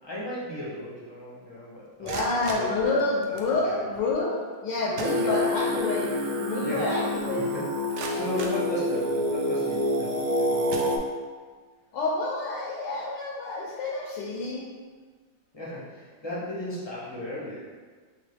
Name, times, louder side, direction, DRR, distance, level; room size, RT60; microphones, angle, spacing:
voice 1, 0.0-3.8 4.8-5.3 6.6-6.8 7.4-7.6 7.9-10.7 15.5-17.6, left 1 dB, 20° left, -9 dB, 0.7 m, -36 dB
sound 1, 1.8-3.6 4.5-4.6 4.9-5.8 6.2-6.3 6.8-6.9 7.5-9.4 10.0-10.2 10.7-11.5, right 3 dB, 70° right, 1.1 m, -40 dB
voice 2, 2.0-7.5 11.9-14.7, left 2 dB, 75° left, -4 dB, 1.2 m, -28 dB
Singing, 5.0-11.0, left 1 dB, 90° right, 1.3 m, -27 dB
3.7 x 3.3 x 3.3 m, 1.5 s
omnidirectional pair, 2.1 m